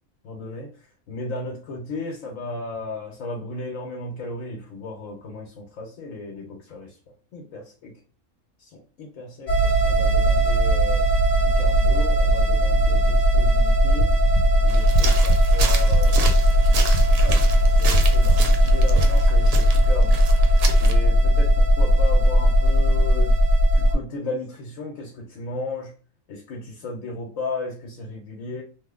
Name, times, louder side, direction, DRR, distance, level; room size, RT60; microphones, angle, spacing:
voice 1, 0.2-7.0 7.3-8.0 8.6-11.1 11.4-14.1 14.6-16.3 17.2-20.2 20.8-23.4 23.7-25.9 26.3-28.6, left 2 dB, 85° left, 0 dB, 1.2 m, -35 dB
sound 1, 9.5-23.9, equal, 50° left, 1.0 m, -18 dB
sound 2, 13.7-19.1, right 3 dB, 85° right, 1.0 m, -30 dB
sound 3, 14.7-20.9, right 5 dB, 60° right, 0.7 m, -32 dB
3.1 x 2.0 x 3.5 m, 0.38 s
omnidirectional pair, 1.4 m